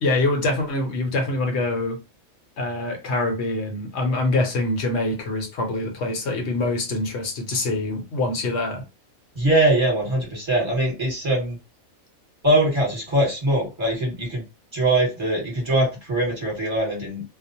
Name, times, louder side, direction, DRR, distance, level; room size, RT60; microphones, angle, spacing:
voice 1, 0.0-2.0 2.6-8.8, left 2 dB, 60° left, 0.9 m, -25 dB
voice 2, 9.3-11.6 12.4-14.4 14.7-17.2, right 1 dB, 20° right, 1.2 m, -22 dB
2.4 x 2.1 x 2.6 m
omnidirectional pair, 1.5 m